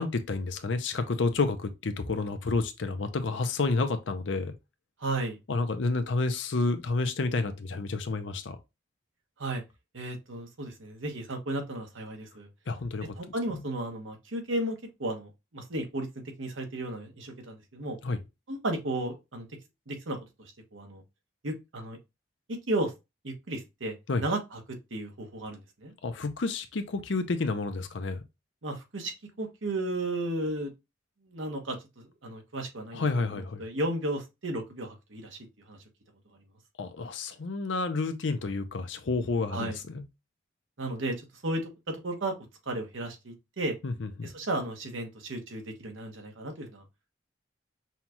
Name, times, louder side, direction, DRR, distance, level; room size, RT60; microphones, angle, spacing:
voice 1, 0.0-4.5 5.5-8.6 12.7-13.1 13.5-13.6 18.0-18.2 24.1-24.2 26.0-28.2 32.9-33.6 36.8-40.0 43.8-44.3, left 3 dB, 75° left, 0.6 m, -30 dB
voice 2, 5.0-5.4 9.4-9.6 9.9-12.5 13.2-16.1 16.4-18.0 18.5-19.5 19.9-21.0 21.4-22.0 22.5-22.9 23.2-23.9 24.2-24.6 24.9-25.9 28.6-30.7 31.2-35.4 35.7-35.8 39.5-39.8 40.8-42.3 42.7-43.7 44.2-46.8, right 1 dB, 90° right, 1.2 m, -34 dB
5.6 x 2.3 x 2.9 m
head